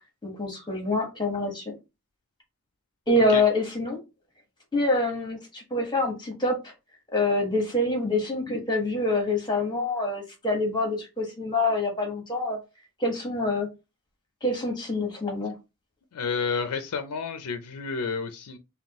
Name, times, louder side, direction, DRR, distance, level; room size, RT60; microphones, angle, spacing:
voice 1, 0.2-1.6 3.1-4.0 4.7-6.7 7.1-12.6 13.0-13.7 14.4-15.5, left 2 dB, 20° left, 1.3 m, -26 dB
voice 2, 16.1-18.6, left 5 dB, 85° left, 0.5 m, -30 dB
5.3 x 2.3 x 2.9 m
head